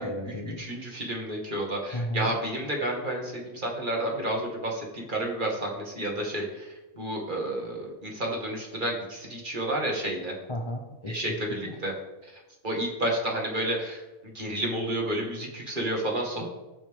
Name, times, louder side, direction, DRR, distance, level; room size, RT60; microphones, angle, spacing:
voice 1, 0.0-0.6 1.9-2.4 10.5-11.3 11.6-11.8, equal, 25° left, 3 dB, 0.7 m, -33 dB
voice 2, 0.6-6.7 7.0-10.3 11.1-11.9 12.6-14.0 14.3-16.5, right 1 dB, 35° right, -1 dB, 2.2 m, -30 dB
18.5 x 6.1 x 3.5 m, 1.1 s
omnidirectional pair, 1.5 m